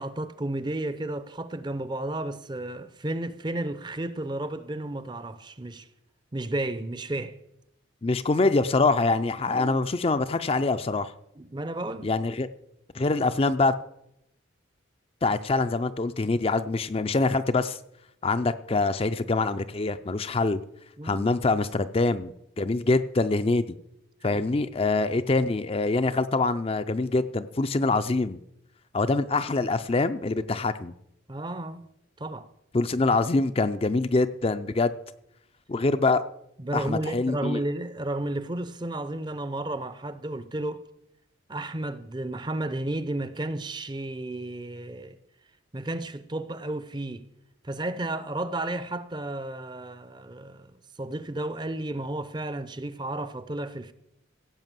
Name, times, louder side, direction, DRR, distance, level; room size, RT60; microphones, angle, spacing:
voice 1, 0.0-5.9 6.3-7.4 9.5-9.8 11.4-12.1 21.0-21.3 24.2-24.4 31.3-31.8 32.2-32.5 36.6-40.8 41.5-45.2 45.7-47.2 47.6-53.9, right 1 dB, 20° right, 0.6 m, -33 dB
voice 2, 8.0-11.1 12.0-12.5 12.9-13.7 15.2-17.8 18.2-20.6 21.0-23.6 24.2-28.4 28.9-30.9 32.7-34.9 35.7-36.2 36.7-37.6, left 3 dB, 30° left, 0.4 m, -24 dB
16.0 x 5.7 x 7.5 m
head